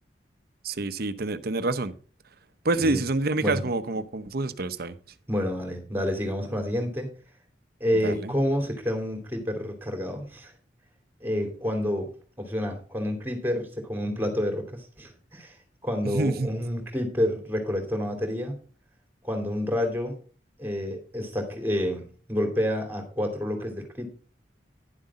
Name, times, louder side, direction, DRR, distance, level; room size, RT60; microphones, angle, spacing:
voice 1, 0.6-1.9 2.6-5.0 8.0-8.3 16.0-16.5, right 2 dB, 60° right, 0.8 m, -27 dB
voice 2, 5.3-7.1 7.8-10.5 11.2-12.1 12.4-15.6 15.8-18.6 19.2-20.1 20.6-24.1, equal, 10° right, 2.8 m, -29 dB
11.0 x 7.6 x 4.2 m
head